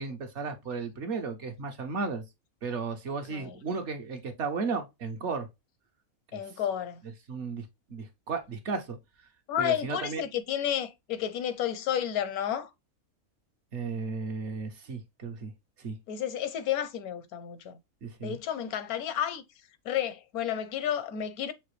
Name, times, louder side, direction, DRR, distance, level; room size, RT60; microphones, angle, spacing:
voice 1, 0.0-2.2 2.6-5.5 6.3-6.4 7.3-7.6 7.9-9.0 9.6-10.2 13.7-15.5 15.8-16.0 18.0-18.4, right 4 dB, 55° right, 1.1 m, -34 dB
voice 2, 6.3-7.0 9.5-12.7 16.1-17.8 18.2-19.4 19.8-21.5, left 10 dB, 80° left, 1.2 m, -31 dB
5.8 x 2.5 x 3.1 m
omnidirectional pair, 1.5 m